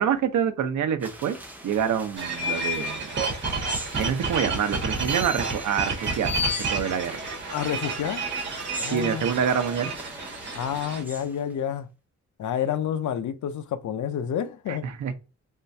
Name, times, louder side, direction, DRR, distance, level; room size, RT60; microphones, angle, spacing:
voice 1, 0.0-1.4 1.6-3.1 3.9-7.1 8.9-9.9 14.7-15.1, right 8 dB, 80° right, 0.8 m, -26 dB
sound 1, 1.0-11.5, left 4 dB, 5° right, 0.7 m, -36 dB
sound 2, 2.2-11.0, right 4 dB, 40° right, 1.8 m, -31 dB
voice 2, 7.5-8.2 8.8-9.3 10.5-11.9 12.4-15.1, left 9 dB, 80° left, 0.6 m, -29 dB
3.7 x 3.3 x 2.7 m
wide cardioid pair, 160°, 29 cm